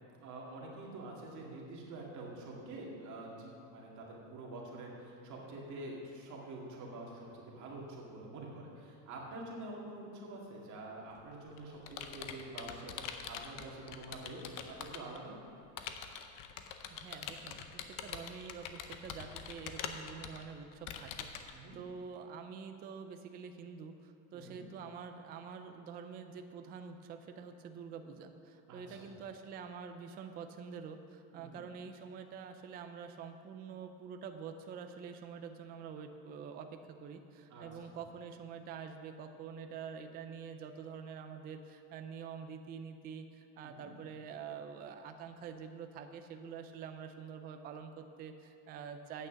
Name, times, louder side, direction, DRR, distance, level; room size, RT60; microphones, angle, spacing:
voice 1, 0.2-14.4 14.7-15.3 21.5-21.8 24.3-24.6 28.7-29.1 31.3-31.6 37.5-37.9 43.6-43.9, right 2 dB, 40° right, -3 dB, 2.3 m, -47 dB
Computer keyboard, 11.1-15.2 15.8-21.5, left 8 dB, 45° left, 0.8 m, -44 dB
voice 2, 16.9-49.3, right 6 dB, 20° right, 7 dB, 0.4 m, -47 dB
8.7 x 6.5 x 7.5 m, 2.5 s
supercardioid pair, 145°, 46 cm